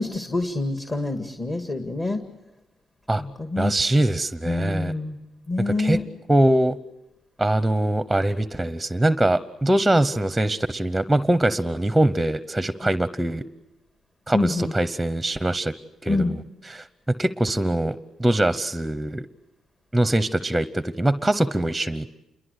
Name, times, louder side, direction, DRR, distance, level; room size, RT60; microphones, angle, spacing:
voice 1, 0.0-2.2 3.2-3.7 4.5-5.2 5.5-6.0 14.3-14.7 16.1-16.3, left 2 dB, 25° left, 6 dB, 2.0 m, -26 dB
voice 2, 3.6-4.9 5.7-6.0 6.3-6.8 7.4-13.4 14.3-15.7 16.0-16.4 16.6-19.3 19.9-22.1, right 1 dB, 5° right, 13 dB, 0.9 m, -22 dB
28.5 x 23.0 x 8.2 m, 0.93 s
cardioid pair, 90°, 0 cm